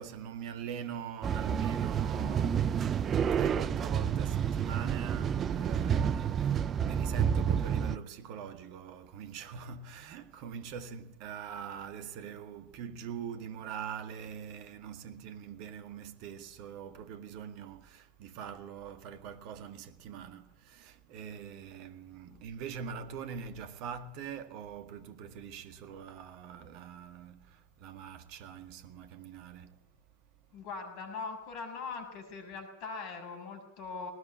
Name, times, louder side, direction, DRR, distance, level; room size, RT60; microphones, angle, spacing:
voice 1, 0.0-29.9, right 7 dB, 45° right, 1.8 m, -43 dB
sound 1, 1.2-8.0, right 8 dB, 25° right, 0.8 m, -29 dB
voice 2, 30.5-34.1, left 4 dB, 40° left, 6.6 m, -41 dB
19.5 x 19.5 x 8.6 m
figure-of-eight pair, 90°, 0 cm